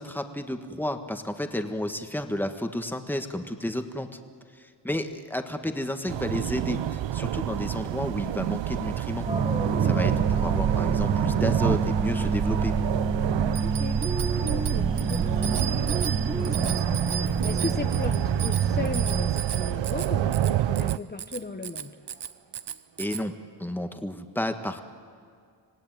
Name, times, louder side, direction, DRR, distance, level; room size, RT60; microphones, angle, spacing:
voice 1, 0.0-4.1 4.6-9.3 9.8-12.7 23.0-23.3 23.6-24.8, left 1 dB, 5° left, 6 dB, 1.6 m, -31 dB
sound 1, 6.1-21.0, right 13 dB, 80° right, 0.6 m, -27 dB
sound 2, 9.3-19.3, right 3 dB, 15° right, 1.6 m, -29 dB
Bicycle bell, 13.5-23.2, right 8 dB, 65° right, 0.9 m, -36 dB
voice 2, 13.6-14.0 14.2-21.9, left 3 dB, 20° left, 4 dB, 1.2 m, -37 dB
26.5 x 17.5 x 9.3 m, 2.2 s
cardioid pair, 70°, 44 cm